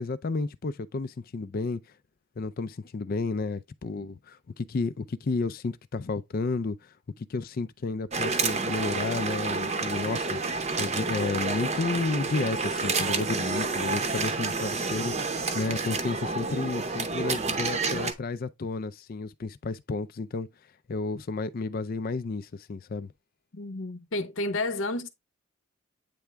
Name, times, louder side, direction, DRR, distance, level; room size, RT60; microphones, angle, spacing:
voice 1, 0.0-1.8 2.4-10.4 10.8-15.1 15.5-20.5 20.9-23.1, left 3 dB, 45° left, 0.4 m, -32 dB
sound 1, 8.1-18.1, right 4 dB, 35° right, 0.8 m, -29 dB
voice 2, 23.5-25.1, left 2 dB, 70° left, 0.8 m, -31 dB
8.4 x 3.4 x 3.3 m
head